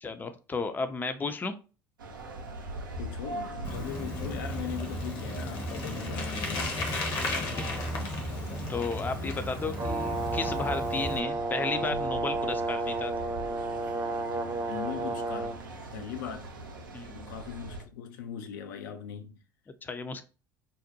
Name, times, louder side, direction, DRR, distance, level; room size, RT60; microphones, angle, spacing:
voice 1, 0.0-1.5 7.3-7.7 8.7-13.1 16.9-17.1 19.8-20.2, left 4 dB, 15° left, 0.4 m, -33 dB
sound 1, 2.0-17.8, right 2 dB, 90° right, 0.4 m, -42 dB
voice 2, 3.0-6.7 14.7-15.6 15.9-16.5 17.1-19.4, left 8 dB, 75° left, 0.4 m, -39 dB
Bicycle, 3.6-11.2, left 1 dB, 55° left, 0.9 m, -34 dB
Brass instrument, 9.8-15.6, right 3 dB, 35° right, 0.6 m, -32 dB
2.6 x 2.1 x 2.6 m
hypercardioid pair, 65°, 11 cm